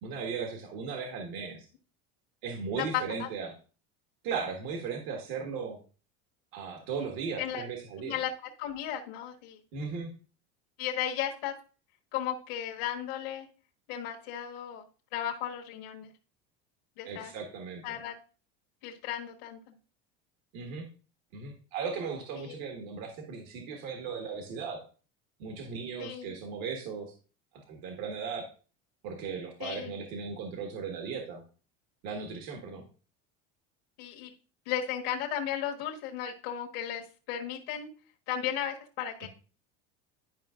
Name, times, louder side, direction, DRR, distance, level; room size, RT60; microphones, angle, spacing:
voice 1, 0.0-1.7 2.4-3.5 4.2-5.8 6.5-8.2 9.7-10.1 17.0-18.0 20.5-20.9 21.3-24.8 25.4-27.1 27.7-28.5 29.0-31.4 32.0-32.8 39.2-39.3, right 5 dB, 65° right, 2 dB, 1.6 m, -37 dB
voice 2, 2.8-3.3 7.4-7.6 8.0-9.6 10.8-11.5 12.1-13.5 13.9-14.8 15.1-16.1 17.0-17.3 17.8-18.1 18.8-19.7 22.5-22.6 26.0-26.4 29.6-29.9 34.0-34.3 34.6-37.9 38.3-39.3, left 10 dB, 80° left, -1 dB, 1.4 m, -35 dB
11.0 x 5.3 x 2.5 m, 0.37 s
cardioid pair, 150°, 30 cm